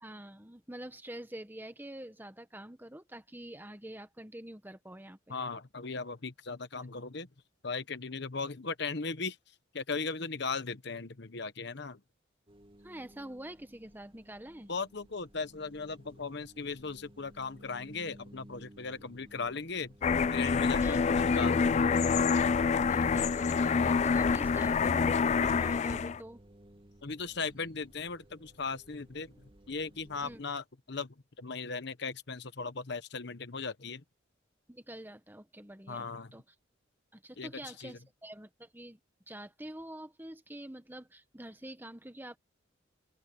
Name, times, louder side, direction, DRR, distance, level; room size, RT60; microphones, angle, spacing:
voice 1, 0.0-5.4 12.8-14.7 20.8-21.1 22.9-26.4 30.2-30.4 34.7-36.5 37.1-39.0 39.3-42.4, right 1 dB, 10° right, 1.4 m, -46 dB
voice 2, 5.3-7.3 7.6-9.4 9.7-12.0 14.7-19.9 20.3-22.0 27.0-29.3 29.7-34.0 35.9-36.3 37.4-37.5 37.8-37.9, left 4 dB, 60° left, 1.1 m, -37 dB
sound 1, 12.5-30.4, right 1 dB, 30° right, 2.3 m, -58 dB
overhead pair of planes Dublin, 20.0-26.2, left 5 dB, 35° left, 0.3 m, -27 dB
open air
head